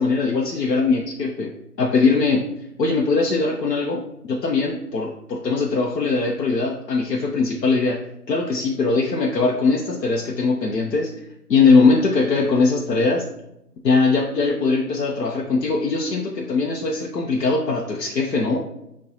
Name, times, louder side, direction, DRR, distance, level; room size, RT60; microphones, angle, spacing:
voice 1, 0.0-1.5 1.8-2.4 2.8-8.0 8.3-11.1 11.5-13.3 13.8-18.6, left 4 dB, 85° left, -1 dB, 0.7 m, -20 dB
7.0 x 2.3 x 2.8 m, 0.82 s
figure-of-eight pair, 175°, 48 cm